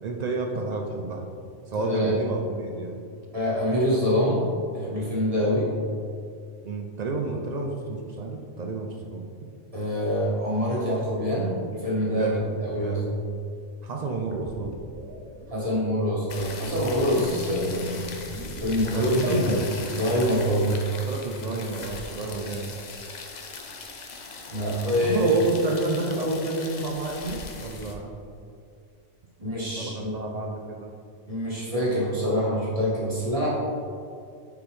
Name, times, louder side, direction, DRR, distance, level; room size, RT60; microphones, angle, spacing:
voice 1, 0.0-1.2 1.7-3.0 6.6-9.3 12.2-12.5 12.7-13.2 13.8-14.8 18.9-19.7 20.9-22.7 25.1-28.1 29.8-30.9, right 2 dB, 60° right, 1 dB, 0.4 m, -30 dB
voice 2, 1.7-2.2 3.3-4.4 4.7-5.7 9.7-12.3 12.6-13.0 15.5-17.9 18.6-19.6 19.9-20.8 24.5-25.3 29.4-30.1 31.3-33.5, equal, 30° right, -7 dB, 1.6 m, -25 dB
sound 1, 14.3-19.7, equal, 90° right, 1.1 m, -40 dB
sound 2, 16.3-27.9, left 4 dB, 50° left, 0.6 m, -40 dB
6.9 x 5.0 x 3.2 m, 2.3 s
omnidirectional pair, 1.3 m